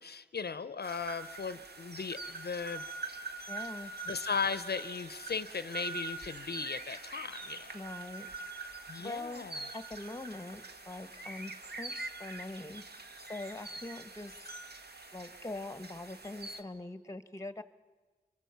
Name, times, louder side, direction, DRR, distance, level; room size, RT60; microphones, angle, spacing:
voice 1, 0.0-2.8 4.1-7.8 8.9-9.7, left 5 dB, 70° left, 13 dB, 0.6 m, -37 dB
sound 1, 0.8-16.6, right 3 dB, 75° right, 1.4 m, -44 dB
voice 2, 3.5-3.9 7.7-8.3 9.0-9.5 9.7-14.5 15.1-17.6, left 2 dB, 15° left, 13 dB, 1.0 m, -43 dB
25.0 x 23.5 x 5.7 m, 1.4 s
wide cardioid pair, 55°, 17 cm